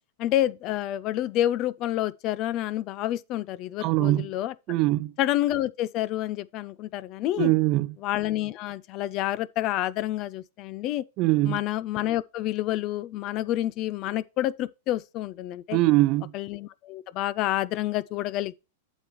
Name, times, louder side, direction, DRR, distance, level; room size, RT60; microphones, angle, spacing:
voice 1, 0.2-4.5 5.2-7.5 8.0-11.0 11.4-15.8 16.3-18.5, left 13 dB, 40° left, 0.5 m, -28 dB
voice 2, 3.8-4.3 4.7-5.1 7.4-7.9 11.2-11.6 15.7-16.3, right 18 dB, 40° right, 0.4 m, -22 dB
8.1 x 7.1 x 3.0 m
hypercardioid pair, 130°, 0 cm